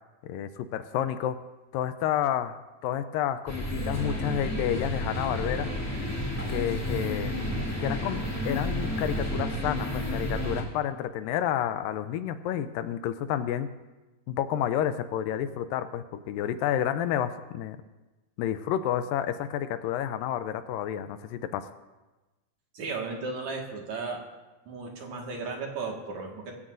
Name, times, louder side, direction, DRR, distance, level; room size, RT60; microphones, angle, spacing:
voice 1, 0.2-1.4 1.7-5.7 6.5-7.4 7.8-13.7 14.3-17.8 18.4-21.7, left 10 dB, 80° left, 11 dB, 2.2 m, -30 dB
sound 1, 3.5-10.6, left 1 dB, 5° left, 1.8 m, -31 dB
voice 2, 22.7-24.2 24.7-26.5, right 4 dB, 60° right, 0 dB, 2.8 m, -35 dB
21.0 x 15.5 x 2.6 m, 1.1 s
omnidirectional pair, 4.1 m